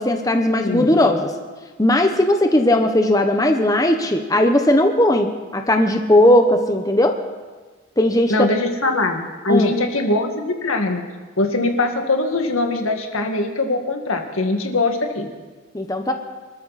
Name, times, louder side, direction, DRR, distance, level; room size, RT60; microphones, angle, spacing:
voice 1, 0.0-1.3 1.8-7.2 8.0-8.3 9.5-9.7 15.7-16.1, left 1 dB, 15° left, 4 dB, 1.0 m, -17 dB
voice 2, 0.6-0.9 8.3-11.0 11.4-15.3, left 2 dB, 85° left, 4 dB, 2.0 m, -21 dB
25.5 x 13.5 x 4.2 m, 1.4 s
head